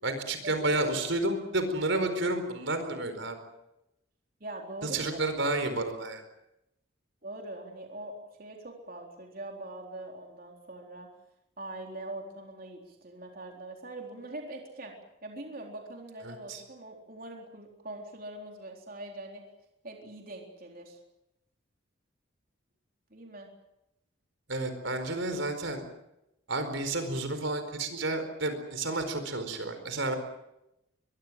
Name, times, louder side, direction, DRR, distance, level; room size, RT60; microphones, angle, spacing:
voice 1, 0.0-3.4 4.8-6.2 16.2-16.6 24.5-25.8 26.5-30.1, right 2 dB, 70° right, 8 dB, 4.6 m, -31 dB
voice 2, 4.4-5.5 7.2-11.1 11.6-14.9 15.2-19.4 19.8-21.0 23.1-23.5, right 2 dB, 45° right, 1 dB, 4.0 m, -43 dB
23.5 x 23.0 x 7.6 m, 0.87 s
head